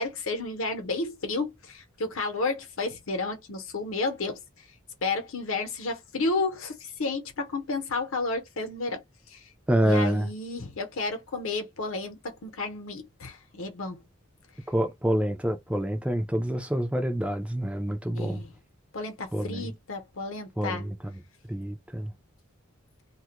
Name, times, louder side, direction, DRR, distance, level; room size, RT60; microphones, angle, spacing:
voice 1, 0.0-4.4 5.0-9.0 9.3-9.4 9.8-14.0 18.1-18.5 18.9-20.9, left 3 dB, 75° left, 0.8 m, -32 dB
voice 2, 9.7-10.3 14.7-18.4 19.3-19.7 20.6-21.0 21.5-22.1, equal, 5° right, 0.4 m, -27 dB
2.3 x 2.1 x 2.8 m
head